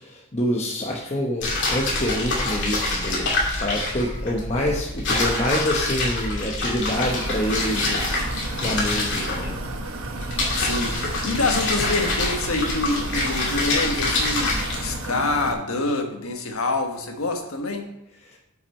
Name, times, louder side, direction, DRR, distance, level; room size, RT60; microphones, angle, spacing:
voice 1, 0.1-8.0 8.6-9.6, left 1 dB, 30° left, -1 dB, 0.9 m, -26 dB
sound 1, 1.4-14.9, left 2 dB, 55° left, 2.6 m, -26 dB
sound 2, 6.9-15.5, right 2 dB, 75° right, 1.1 m, -33 dB
voice 2, 10.5-17.9, left 3 dB, 75° left, 4 dB, 1.3 m, -26 dB
8.9 x 6.1 x 4.3 m, 0.96 s
head